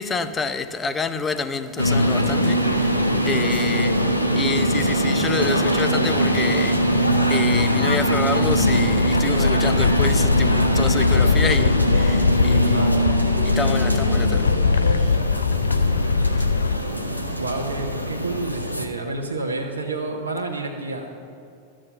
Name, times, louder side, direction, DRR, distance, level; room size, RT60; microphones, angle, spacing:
voice 1, 0.0-12.9 13.4-15.2, left 4 dB, 15° left, 0.7 m, -28 dB
sound 1, 1.8-18.9, equal, 90° left, 1.0 m, -22 dB
voice 2, 5.2-5.5 12.6-13.0 17.4-21.1, right 2 dB, 75° right, 1.1 m, -29 dB
sound 2, 8.4-16.8, left 5 dB, 70° left, 0.3 m, -21 dB
13.5 x 7.5 x 8.1 m
figure-of-eight pair, 90°, 0 cm